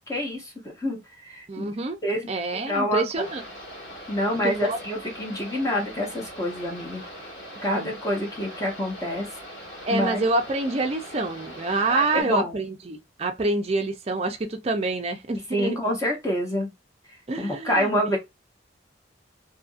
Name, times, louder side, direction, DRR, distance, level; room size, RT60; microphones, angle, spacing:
voice 1, 0.1-1.7 2.0-3.3 4.1-7.0 7.6-9.3 9.9-10.2 11.9-12.6 15.5-16.7 17.4-18.2, equal, 15° left, 0.7 m, -27 dB
voice 2, 1.5-2.0 2.3-3.4 4.4-4.8 7.7-7.9 9.9-15.8 17.3-17.9, right 3 dB, 30° right, 0.4 m, -27 dB
sound 1, 3.1-12.2, equal, 65° left, 1.8 m, -41 dB
2.7 x 2.6 x 2.4 m
head